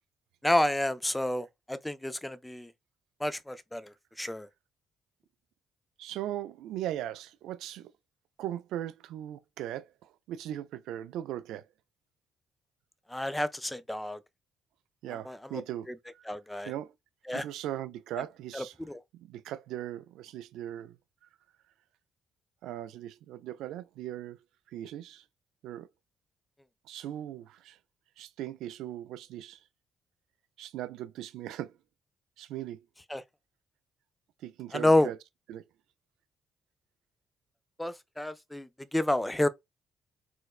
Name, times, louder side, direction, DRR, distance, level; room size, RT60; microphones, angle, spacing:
voice 1, 0.4-2.7 3.2-4.5 13.1-14.2 15.3-15.6 16.3-16.7 17.3-17.4 18.5-19.0 33.1-33.2 34.7-35.1 37.8-39.5, left 1 dB, 10° left, 0.4 m, -29 dB
voice 2, 6.0-7.9 8.4-11.6 15.0-16.2 16.7-16.9 17.3-18.8 19.1-21.0 22.6-24.4 24.7-25.2 25.6-25.9 26.9-27.8 28.2-29.6 30.6-31.7 32.4-32.8 34.4-35.2 35.5-35.6, right 12 dB, 90° right, 0.3 m, -39 dB
4.4 x 2.1 x 2.3 m
cardioid pair, 90°, 0 cm